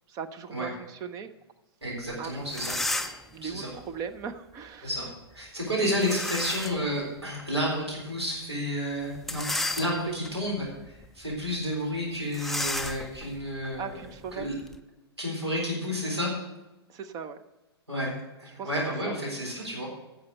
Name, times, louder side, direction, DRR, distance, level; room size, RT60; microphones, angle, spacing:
voice 1, 0.1-1.3 2.2-2.4 3.3-4.9 10.1-10.4 13.7-14.5 16.9-17.4 18.5-18.7 19.0-19.2, right 7 dB, 25° right, 9 dB, 0.7 m, -38 dB
voice 2, 1.8-2.7 3.0-3.7 4.8-5.1 5.3-9.5 9.8-13.9 14.4-14.5 15.2-16.3 17.9-19.9, equal, 85° right, -4 dB, 4.0 m, -31 dB
sound 1, 2.1-2.2 2.5-3.3 6.0-6.9 7.4-7.5 9.2-10.3 10.9-11.1 11.3-11.5 12.3-14.8, left 2 dB, ahead, 0.4 m, -33 dB
11.0 x 6.8 x 6.5 m, 1.0 s
figure-of-eight pair, 105°, 14 cm